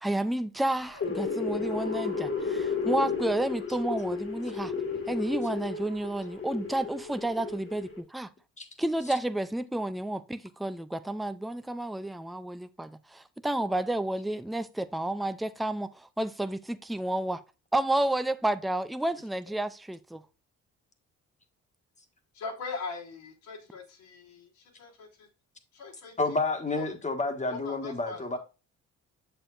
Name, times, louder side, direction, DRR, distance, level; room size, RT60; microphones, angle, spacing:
voice 1, 0.0-4.7 5.1-8.3 8.8-17.4 17.7-20.2, right 1 dB, ahead, 0.4 m, -31 dB
sound 1, 0.8-8.0, left 5 dB, 45° left, 1.8 m, -33 dB
voice 2, 22.3-25.3 25.7-26.1 26.7-26.9 27.5-28.4, left 4 dB, 90° left, 3.5 m, -41 dB
voice 3, 26.2-28.4, left 3 dB, 25° left, 1.5 m, -30 dB
7.4 x 6.9 x 2.5 m
cardioid pair, 90°, 30 cm